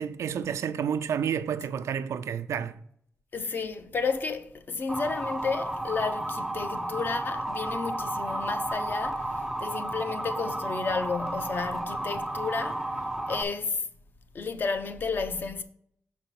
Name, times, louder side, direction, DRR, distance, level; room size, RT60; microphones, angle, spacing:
voice 1, 0.0-2.8, right 8 dB, 85° right, 0.4 m, -30 dB
voice 2, 3.3-12.9 13.3-13.8 14.3-15.6, left 4 dB, 45° left, 0.6 m, -32 dB
Motor vehicle (road) / Siren, 4.9-13.4, right 1 dB, 5° right, 0.4 m, -32 dB
6.0 x 4.3 x 5.5 m
wide cardioid pair, 165°, 5 cm